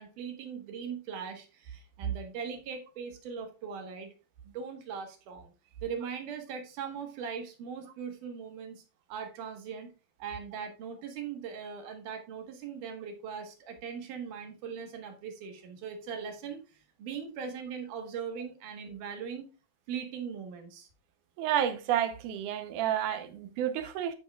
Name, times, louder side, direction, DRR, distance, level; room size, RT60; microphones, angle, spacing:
voice 1, 0.0-4.1 4.4-5.5 5.8-8.8 9.1-9.9 10.2-19.5 19.9-20.9, right 6 dB, 60° right, 2.5 m, -40 dB
voice 2, 21.4-24.1, right 10 dB, 85° right, 1.8 m, -30 dB
15.0 x 5.4 x 2.3 m
omnidirectional pair, 4.8 m